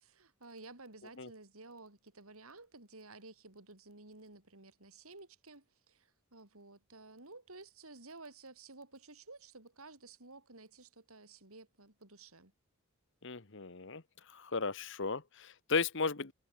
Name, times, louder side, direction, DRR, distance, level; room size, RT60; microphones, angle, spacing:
voice 1, 0.0-12.5, right 3 dB, 80° right, 5.1 m, -54 dB
voice 2, 13.2-14.0 14.3-16.3, left 4 dB, 55° left, 1.4 m, -35 dB
head